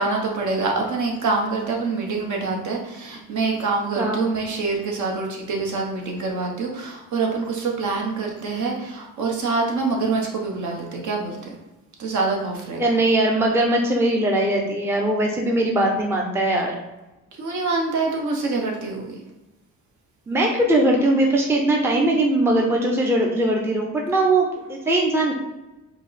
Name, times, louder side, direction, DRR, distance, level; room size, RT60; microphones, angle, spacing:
voice 1, 0.0-11.5 12.0-12.8 17.4-19.1, right 3 dB, 60° right, 0 dB, 1.1 m, -25 dB
voice 2, 12.8-16.7 20.3-25.3, right 1 dB, 10° right, 0 dB, 0.5 m, -20 dB
4.6 x 2.2 x 4.1 m, 1.0 s
cardioid pair, 120°, 33 cm